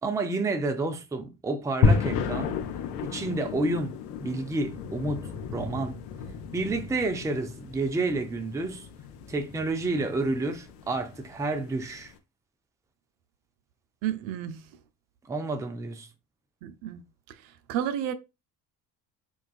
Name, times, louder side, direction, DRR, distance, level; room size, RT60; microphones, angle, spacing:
voice 1, 0.0-2.6 3.0-3.9 4.2-5.2 5.5-6.0 6.5-8.9 9.3-12.1 15.3-16.1, right 2 dB, 5° right, 0.4 m, -29 dB
sound 1, 1.8-12.1, left 5 dB, 85° left, 0.6 m, -32 dB
voice 2, 14.0-14.8 16.6-17.0 17.3-18.1, right 10 dB, 70° right, 0.6 m, -32 dB
3.7 x 2.3 x 2.3 m
hypercardioid pair, 60°, 48 cm